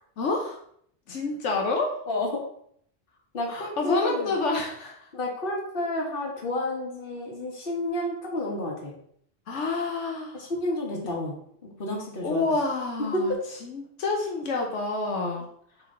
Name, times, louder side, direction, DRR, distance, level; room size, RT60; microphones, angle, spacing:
voice 1, 0.2-0.6 1.1-2.0 3.5-5.1 9.5-10.4 12.2-15.5, left 3 dB, 85° left, 1 dB, 1.3 m, -28 dB
voice 2, 2.1-2.4 3.3-4.3 5.1-8.9 10.3-11.3 11.6-12.4 13.1-13.4, left 1 dB, 50° left, 0 dB, 1.7 m, -30 dB
7.1 x 3.8 x 3.8 m, 0.66 s
omnidirectional pair, 1.2 m